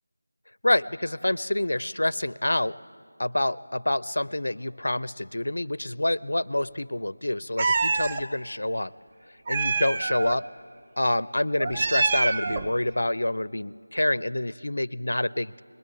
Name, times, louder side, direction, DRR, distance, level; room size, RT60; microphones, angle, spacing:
voice 1, 0.6-2.8 3.2-8.9 9.5-10.5 11.0-15.6, left 1 dB, 65° left, 20 dB, 0.5 m, -27 dB
Meow, 7.6-8.2 9.5-10.4 11.6-12.7, right 4 dB, 20° right, 0.5 m, -26 dB
21.0 x 20.0 x 8.1 m, 2.2 s
figure-of-eight pair, 170°, 0 cm